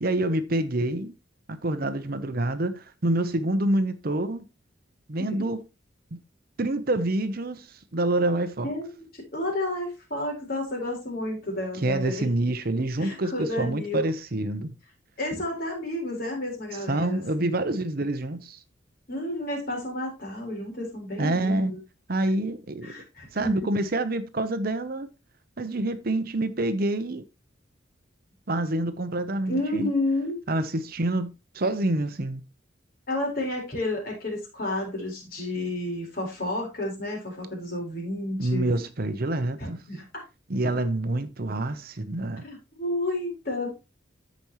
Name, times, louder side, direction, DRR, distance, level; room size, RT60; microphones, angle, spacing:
voice 1, 0.0-1.1 1.5-4.4 5.1-5.6 6.1-6.2 6.6-8.7 11.7-14.7 16.9-18.6 21.2-21.7 22.1-22.9 23.3-25.1 25.6-27.2 28.5-29.9 30.5-32.4 38.4-39.8 40.5-42.4, right 1 dB, 50° right, 0.8 m, -27 dB
voice 2, 8.6-9.0 9.3-12.3 13.0-14.0 15.2-17.5 19.1-21.8 22.8-23.5 29.5-30.4 33.1-38.7 39.6-40.1 42.4-43.7, left 1 dB, 50° left, 4.3 m, -31 dB
14.0 x 5.2 x 3.0 m
head